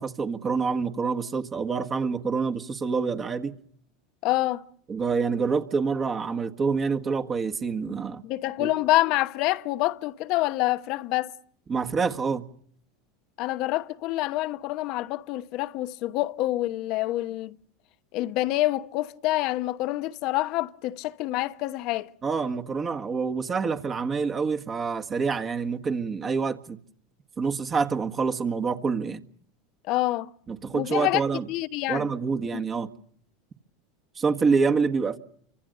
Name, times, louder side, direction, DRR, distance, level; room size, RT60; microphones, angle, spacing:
voice 1, 0.0-3.5 4.9-8.2 8.6-8.7 11.7-12.4 22.2-26.8 27.4-29.2 30.5-31.5 31.9-32.9 34.2-35.2, right 5 dB, 30° right, 1.7 m, -27 dB
voice 2, 4.2-4.6 8.2-11.3 13.4-17.6 18.1-22.1 29.9-30.3 30.7-31.2 31.5-32.1 32.5-32.6, left 17 dB, 55° left, 1.0 m, -27 dB
29.5 x 25.0 x 6.7 m
hypercardioid pair, 90°, 0 cm